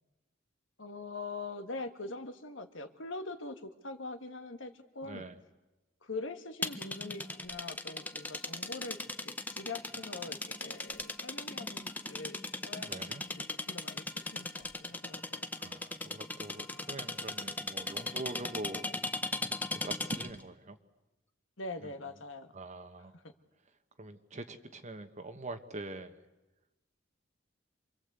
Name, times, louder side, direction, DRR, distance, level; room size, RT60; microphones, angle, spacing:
voice 1, 0.8-5.2 6.0-9.0 9.2-15.5 21.6-22.5 23.2-23.3, left 3 dB, 75° left, 9 dB, 1.8 m, -43 dB
voice 2, 5.0-5.4 12.8-13.3 15.6-18.9 19.8-20.8 21.8-21.9 22.5-23.2 24.0-26.2, right 2 dB, 35° right, 8 dB, 1.2 m, -44 dB
sound 1, 6.6-20.4, left 2 dB, 10° left, 0.9 m, -38 dB
27.5 x 23.0 x 8.2 m, 1.0 s
head